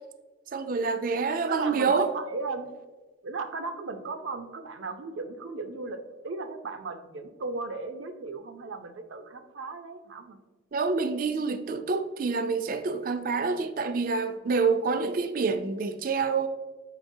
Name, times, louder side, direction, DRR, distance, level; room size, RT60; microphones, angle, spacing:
voice 1, 0.5-2.1 10.7-16.5, right 4 dB, 45° right, 0.4 m, -27 dB
voice 2, 1.3-2.7 3.2-10.4, right 3 dB, 85° right, 0.6 m, -36 dB
7.7 x 5.1 x 2.7 m
head